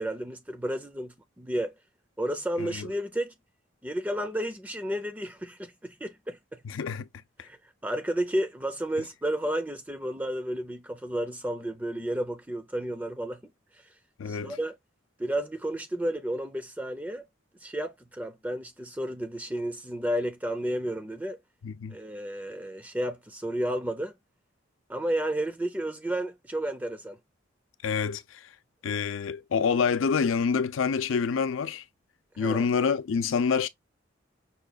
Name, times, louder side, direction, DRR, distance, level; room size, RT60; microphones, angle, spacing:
voice 1, 0.0-1.7 2.2-3.3 3.8-6.6 7.4-13.9 14.3-14.8 15.2-17.2 17.6-21.4 21.9-24.1 24.9-27.2 32.3-32.7, right 1 dB, 10° right, 0.4 m, -32 dB
voice 2, 6.6-7.1 14.2-14.6 21.6-22.0 27.8-28.4 28.8-31.8 32.4-33.7, left 6 dB, 85° left, 0.4 m, -27 dB
5.6 x 2.3 x 2.2 m
head